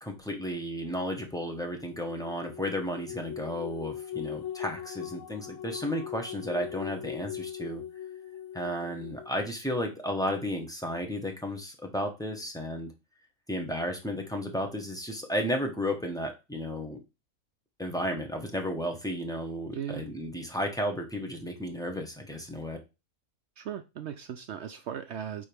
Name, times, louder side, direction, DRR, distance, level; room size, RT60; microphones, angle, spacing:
voice 1, 0.0-7.8 8.5-12.9 13.5-17.0 17.8-22.8, equal, 5° left, 3 dB, 1.1 m, -33 dB
sound 1, 1.6-9.5, left 10 dB, 65° left, 0.9 m, -40 dB
voice 2, 23.6-25.4, right 9 dB, 70° right, 9 dB, 0.6 m, -37 dB
9.1 x 3.9 x 3.5 m, 0.27 s
omnidirectional pair, 1.6 m